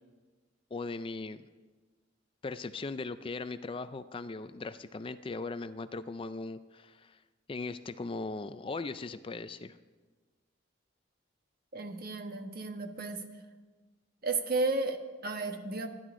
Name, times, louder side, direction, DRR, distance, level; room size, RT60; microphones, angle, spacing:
voice 1, 0.7-1.5 2.4-7.2 7.5-9.8, left 3 dB, 25° left, 12 dB, 0.4 m, -39 dB
voice 2, 11.7-13.2 14.2-15.9, right 3 dB, 50° right, 6 dB, 1.3 m, -33 dB
28.0 x 11.0 x 3.7 m, 1.3 s
head